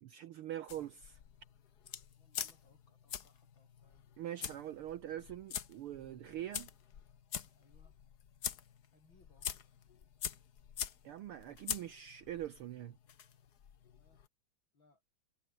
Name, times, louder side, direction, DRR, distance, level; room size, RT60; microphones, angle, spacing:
voice 1, 0.0-1.2 4.2-6.7 11.0-13.0, right 12 dB, 85° right, 1.2 m, -43 dB
sound 1, 0.7-14.3, left 8 dB, 55° left, 1.1 m, -45 dB
voice 2, 2.2-4.1 7.6-8.0 8.9-9.5 11.1-11.3 14.0-14.3 14.7-15.0, left 3 dB, 40° left, 6.4 m, -70 dB
omnidirectional pair, 3.5 m